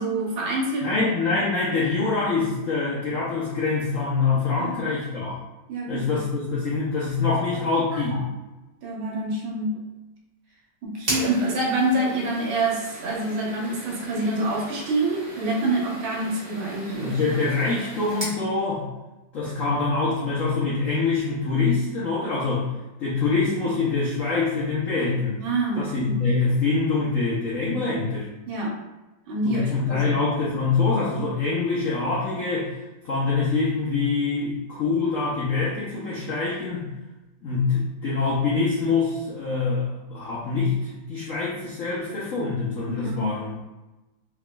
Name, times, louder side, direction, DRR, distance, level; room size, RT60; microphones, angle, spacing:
voice 1, 0.0-1.0 4.6-4.8 5.7-6.0 7.9-8.0 8.8-9.7 10.8-17.2 25.4-26.1 28.5-28.7 29.3-30.1 42.9-43.2, right 2 dB, 70° right, -3 dB, 1.7 m, -26 dB
voice 2, 0.8-5.4 5.9-8.3 16.9-18.9 19.3-22.7 23.0-25.4 25.7-28.3 29.4-32.7 33.0-36.9 37.4-43.6, left 4 dB, 80° left, -6 dB, 0.7 m, -25 dB
sound 1, 11.0-18.4, right 1 dB, 35° right, 1.1 m, -37 dB
4.1 x 3.4 x 2.2 m, 1.1 s
omnidirectional pair, 2.4 m